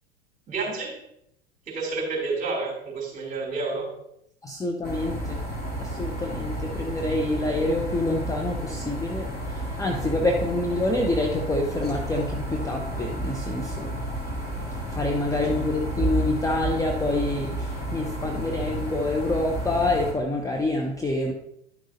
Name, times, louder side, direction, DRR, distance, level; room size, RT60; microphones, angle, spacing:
voice 1, 0.5-1.0 1.7-3.9, right 3 dB, 25° right, -1 dB, 3.5 m, -29 dB
voice 2, 4.4-5.4 5.8-13.9 14.9-21.3, left 2 dB, 10° left, 2 dB, 0.8 m, -27 dB
sound 1, 4.8-20.1, right 1 dB, 30° left, 2.4 m, -31 dB
11.0 x 6.3 x 2.8 m, 0.77 s
figure-of-eight pair, 85°, 33 cm